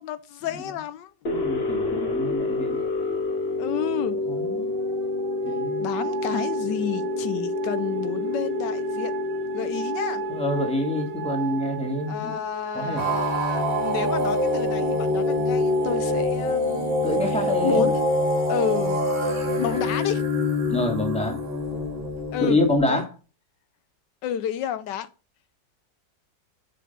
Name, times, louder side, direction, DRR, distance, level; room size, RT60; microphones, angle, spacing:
voice 1, 0.0-1.1 3.6-4.2 5.8-9.1 9.5-10.2 12.1-16.9 17.2-18.0 18.5-19.0 19.6-20.2 22.3-22.6 22.9-23.0 24.2-25.1, left 10 dB, 80° left, 1.2 m, -30 dB
sound 1, 1.2-12.1, left 2 dB, 35° left, 1.8 m, -29 dB
voice 2, 1.3-2.8 4.3-4.7 5.4-5.8 10.3-12.4 12.7-13.0 17.0-17.9 20.7-21.4 22.4-23.1, left 1 dB, 5° left, 1.7 m, -26 dB
sound 2, 3.7-16.2, right 6 dB, 75° right, 1.6 m, -35 dB
sound 3, 13.0-22.8, left 1 dB, 30° right, 2.0 m, -25 dB
6.8 x 5.0 x 5.2 m
omnidirectional pair, 1.9 m